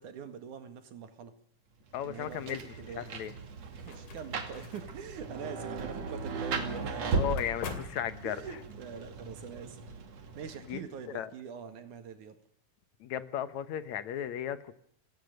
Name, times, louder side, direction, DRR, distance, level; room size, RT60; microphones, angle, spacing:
voice 1, 0.0-1.4 2.0-3.1 3.8-7.0 8.2-9.8 10.3-12.4, right 7 dB, 80° right, 9 dB, 3.4 m, -44 dB
voice 2, 1.9-3.3 7.1-8.4 10.7-10.8 11.1-11.3 13.0-14.8, left 9 dB, 70° left, 13 dB, 2.5 m, -35 dB
Rain, 1.9-11.0, right 4 dB, 60° right, 3.5 m, -37 dB
sound 1, 3.4-8.7, left 5 dB, 85° left, 4.2 m, -46 dB
28.0 x 18.0 x 6.7 m, 0.62 s
omnidirectional pair, 3.5 m